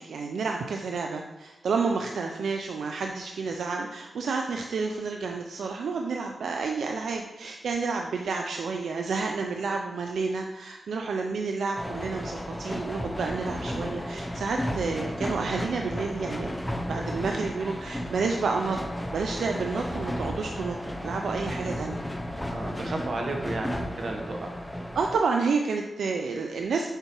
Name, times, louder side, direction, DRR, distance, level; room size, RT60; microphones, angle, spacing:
voice 1, 0.0-16.5 16.9-18.8 19.1-22.0 22.8-22.9 24.9-26.9, right 4 dB, 80° right, 3 dB, 0.4 m, -30 dB
sound 1, 11.8-25.2, equal, 10° left, 0.6 m, -33 dB
voice 2, 22.5-24.6, right 2 dB, 55° right, 2 dB, 1.1 m, -33 dB
6.7 x 5.6 x 3.0 m, 1.0 s
wide cardioid pair, 110°, 0 cm